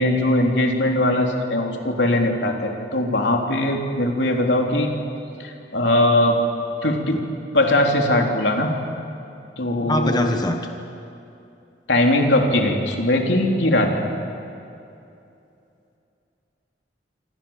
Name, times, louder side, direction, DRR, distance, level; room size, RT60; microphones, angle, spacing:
voice 1, 0.0-4.9 5.4-6.4 6.8-7.2 7.5-8.7 9.6-10.3 11.9-13.9, left 1 dB, 80° left, 2 dB, 3.4 m, -20 dB
voice 2, 9.8-10.6, left 1 dB, 25° left, 5 dB, 1.3 m, -22 dB
27.0 x 26.5 x 7.3 m, 2.7 s
head